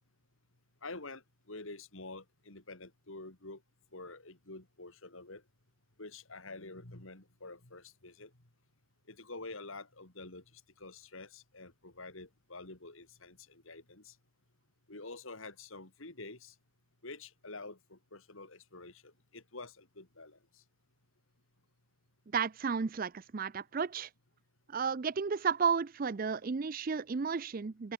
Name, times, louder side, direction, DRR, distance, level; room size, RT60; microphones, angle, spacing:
voice 1, 0.8-3.6 3.9-5.4 6.0-8.3 9.1-14.1 14.9-16.5 17.0-20.4, left 3 dB, 70° left, 3.1 m, -48 dB
voice 2, 22.3-24.1 24.7-27.9, right 5 dB, 40° right, 0.4 m, -33 dB
open air
head